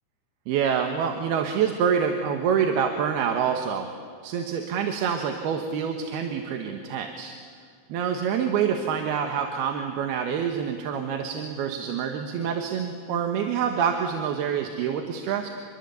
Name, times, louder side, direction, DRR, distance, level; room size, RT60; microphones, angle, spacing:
voice 1, 0.5-3.9 4.2-7.3 7.9-15.5, right 7 dB, 80° right, 5 dB, 3.3 m, -26 dB
27.0 x 22.5 x 8.3 m, 2.2 s
omnidirectional pair, 4.6 m